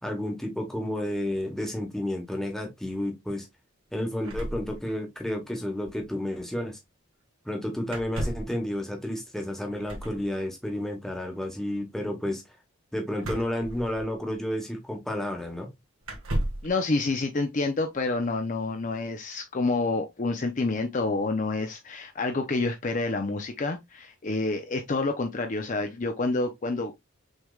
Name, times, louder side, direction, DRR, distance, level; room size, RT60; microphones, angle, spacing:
voice 1, 0.0-3.5 3.9-6.8 7.4-12.4 12.9-15.7, left 1 dB, ahead, 1.1 m, -31 dB
sound 1, 4.2-5.3 5.6-5.7 5.8-6.0 7.9-8.6 9.8-10.2 13.2-14.3 15.2-15.3 16.0-16.7, right 1 dB, 80° right, 1.7 m, -34 dB
voice 2, 16.6-27.0, left 3 dB, 35° left, 0.5 m, -28 dB
6.3 x 3.3 x 2.3 m
head